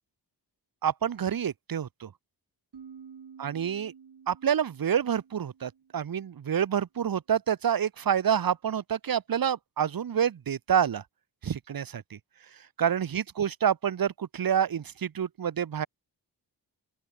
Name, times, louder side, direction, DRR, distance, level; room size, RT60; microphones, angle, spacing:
voice 1, 0.8-2.1 3.4-3.9 4.3-11.0 11.4-12.2 12.8-15.9, right 8 dB, 55° right, 1.1 m, -28 dB
sound 1, 2.7-6.3, right 7 dB, 75° right, 5.4 m, -51 dB
open air
wide cardioid pair, 85°, 41 cm